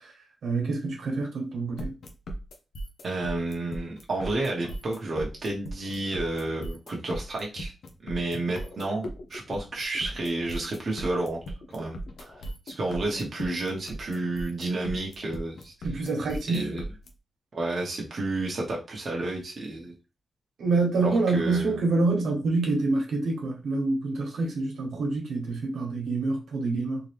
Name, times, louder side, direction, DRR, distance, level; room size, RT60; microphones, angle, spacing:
voice 1, 0.4-1.9 15.8-16.7 20.6-27.0, right 3 dB, 85° right, 1.3 m, -27 dB
sound 1, 1.8-17.1, right 1 dB, 75° left, 0.8 m, -37 dB
voice 2, 3.0-7.7 8.0-11.4 11.7-12.3 12.7-15.7 16.5-16.9 17.5-19.9 21.0-21.8, right 2 dB, 45° right, 1.0 m, -31 dB
3.7 x 3.0 x 3.3 m
wide cardioid pair, 140°, 0 cm